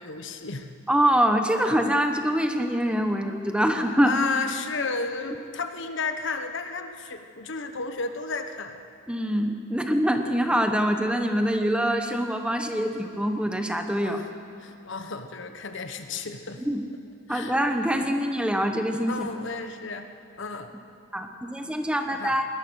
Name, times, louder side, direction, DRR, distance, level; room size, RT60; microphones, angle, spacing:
voice 1, 0.0-0.7 4.0-8.8 14.0-14.3 14.6-16.6 17.3-17.6 19.1-20.1 20.4-20.7 22.1-22.4, left 4 dB, 65° left, 7 dB, 1.2 m, -32 dB
voice 2, 0.9-4.2 9.1-14.2 16.6-16.8 17.3-19.5 21.1-22.5, equal, 5° right, 5 dB, 1.1 m, -24 dB
21.0 x 19.0 x 6.4 m, 2.4 s
head